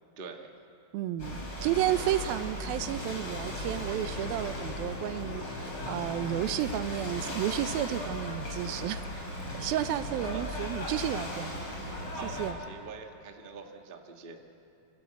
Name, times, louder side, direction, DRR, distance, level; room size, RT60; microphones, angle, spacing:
voice 1, 0.2-0.5 10.3-10.4 12.1-14.5, right 5 dB, 40° right, 2 dB, 0.7 m, -45 dB
voice 2, 0.9-9.3 9.6-11.6 12.4-12.6, right 12 dB, 85° right, 12 dB, 2.7 m, -32 dB
Ocean / Boat Water vehicle, 1.2-12.5, left 1 dB, 35° left, 5.7 m, -37 dB
Bowed string instrument, 2.7-8.2, left 6 dB, 75° left, 3.9 m, -47 dB
28.0 x 25.5 x 8.2 m, 2.7 s
omnidirectional pair, 4.1 m